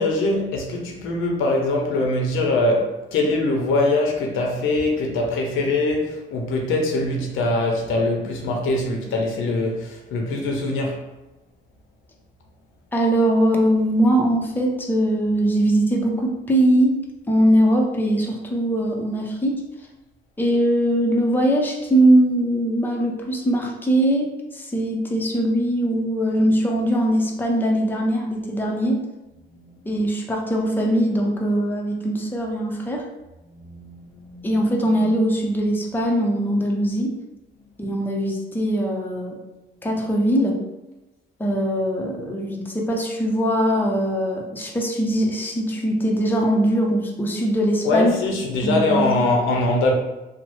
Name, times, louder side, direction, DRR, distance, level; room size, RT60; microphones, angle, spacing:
voice 1, 0.0-11.0 29.5-29.7 33.5-34.6 47.8-49.9, left 2 dB, 90° left, 0.6 m, -23 dB
voice 2, 12.9-17.0 17.3-19.6 20.4-29.0 29.9-33.1 34.4-37.1 37.8-39.4 39.8-40.6 41.4-48.2 48.6-49.1, right 1 dB, 10° left, 0.6 m, -21 dB
3.0 x 2.0 x 3.0 m
cardioid pair, 90°, 20 cm